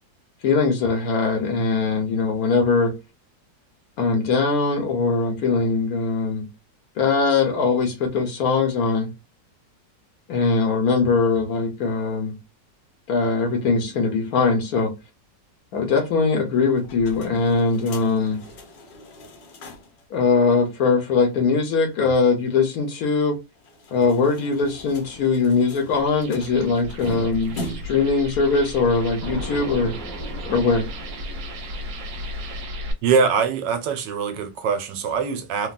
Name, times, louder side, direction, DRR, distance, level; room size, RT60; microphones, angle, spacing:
voice 1, 0.4-3.0 4.0-6.5 7.0-9.1 10.3-12.4 13.1-14.9 15.7-18.4 20.1-23.4 23.9-30.0 30.5-30.9, left 4 dB, 65° left, 1.1 m, -21 dB
sound 1, 16.8-20.0 20.3-20.4 20.7-20.8 23.5-28.1, left 1 dB, 80° left, 1.5 m, -40 dB
sound 2, 24.6-32.7, right 1 dB, 25° right, 0.9 m, -40 dB
sound 3, 25.8-32.9, equal, 65° right, 1.2 m, -35 dB
voice 2, 33.0-35.7, right 5 dB, 80° right, 1.2 m, -23 dB
3.4 x 2.3 x 2.3 m
omnidirectional pair, 1.9 m